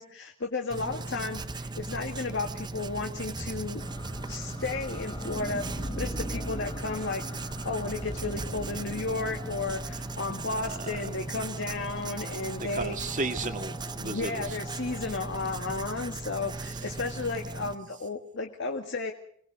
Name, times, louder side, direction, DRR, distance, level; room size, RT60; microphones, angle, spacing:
voice 1, 0.0-3.8 4.3-7.2 7.6-13.0 14.0-19.1, left 3 dB, 60° left, 4 dB, 1.9 m, -33 dB
Writing, 0.7-17.8, right 3 dB, 20° right, 0.8 m, -38 dB
sound 1, 3.8-15.7, equal, 25° left, 2.9 m, -41 dB
voice 2, 10.4-11.1 12.6-14.5, right 3 dB, 40° right, 7 dB, 2.0 m, -34 dB
26.0 x 19.5 x 5.3 m, 0.62 s
head